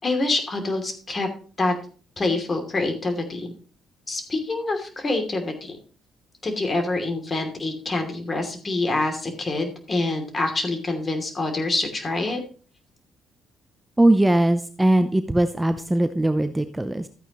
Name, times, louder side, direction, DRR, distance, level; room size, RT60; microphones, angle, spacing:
voice 1, 0.0-1.3 1.6-1.7 2.2-3.5 4.1-5.8 6.4-12.4, left 2 dB, 35° left, 5 dB, 2.8 m, -26 dB
voice 2, 14.0-17.1, right 1 dB, 10° right, 10 dB, 0.7 m, -20 dB
13.0 x 8.9 x 3.1 m, 0.39 s
cardioid pair, 90°, 0 cm